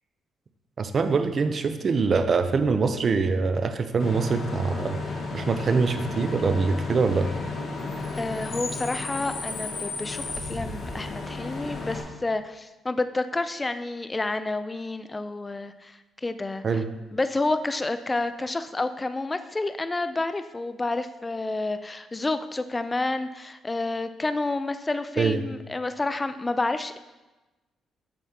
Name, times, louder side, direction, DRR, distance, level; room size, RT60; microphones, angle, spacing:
voice 1, 0.8-5.0 5.3-7.3 16.6-16.9 25.2-25.4, right 4 dB, 45° right, 9 dB, 0.6 m, -24 dB
Bus / Idling / Screech, 4.0-12.0, left 3 dB, 55° left, 1.5 m, -33 dB
voice 2, 8.1-16.8 17.1-27.0, left 2 dB, 20° left, 11 dB, 0.4 m, -29 dB
8.4 x 6.6 x 2.9 m, 1.1 s
cardioid pair, 90°, 0 cm